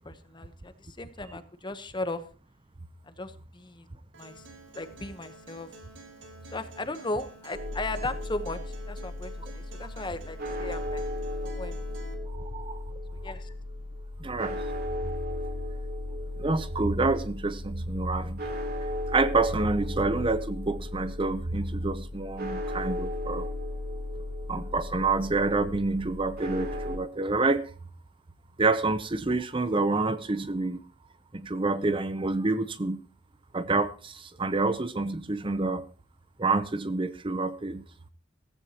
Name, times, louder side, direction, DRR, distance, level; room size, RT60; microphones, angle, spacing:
voice 1, 0.0-0.7 1.0-2.2 3.1-3.9 4.2-4.4 4.8-5.7 6.5-8.6 8.9-11.0 11.4-11.8 13.2-13.5, left 2 dB, 25° left, 1.0 m, -36 dB
Acoustic guitar, 4.1-12.1, right 2 dB, 85° right, 4.0 m, -50 dB
sound 1, 7.5-27.0, left 1 dB, 50° right, 3.3 m, -36 dB
voice 2, 12.3-12.8 14.2-14.6 16.4-18.4 19.1-23.5 24.5-27.6 28.6-30.8 31.3-33.0 33.5-35.8 36.4-37.8, right 3 dB, 25° right, 0.7 m, -28 dB
16.0 x 15.0 x 3.0 m
head